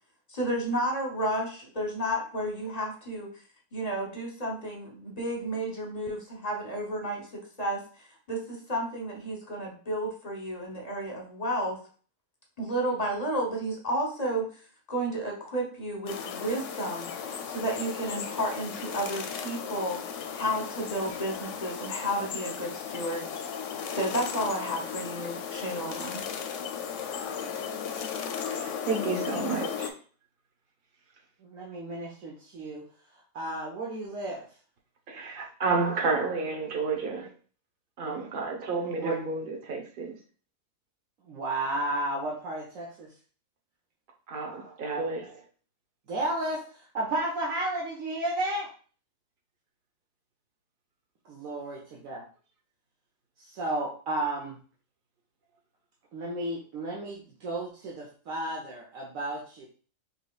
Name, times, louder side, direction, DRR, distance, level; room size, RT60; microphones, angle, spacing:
voice 1, 0.3-3.3 3.7-11.8 12.6-14.5 14.9-20.0 20.3-23.3 23.9-26.2, right 1 dB, 35° left, 0.9 m, -32 dB
sound 1, 16.1-29.9, left 7 dB, 70° left, 0.9 m, -36 dB
voice 2, 28.5-29.9 35.1-37.3 38.0-40.2 44.3-45.4, right 4 dB, 45° right, 0.9 m, -31 dB
voice 3, 31.4-32.8 33.3-34.4 39.0-39.2 41.3-43.1 46.1-46.6 46.9-48.7 51.4-52.2 53.5-54.5 56.1-59.7, right 1 dB, 75° right, 1.3 m, -32 dB
5.7 x 3.1 x 2.3 m
omnidirectional pair, 1.4 m